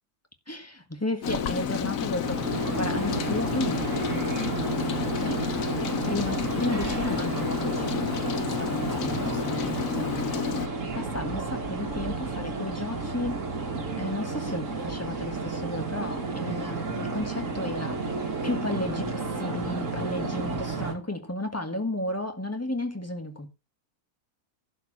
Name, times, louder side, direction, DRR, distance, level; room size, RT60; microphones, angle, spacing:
voice 1, 0.5-5.5 6.0-10.4 10.9-13.4 14.0-23.5, left 1 dB, 10° left, 1.7 m, -34 dB
Rain, 1.2-10.7, left 8 dB, 65° left, 1.2 m, -30 dB
sound 1, 2.2-20.9, right 3 dB, 55° right, 2.1 m, -32 dB
11.5 x 4.8 x 7.4 m
omnidirectional pair, 1.6 m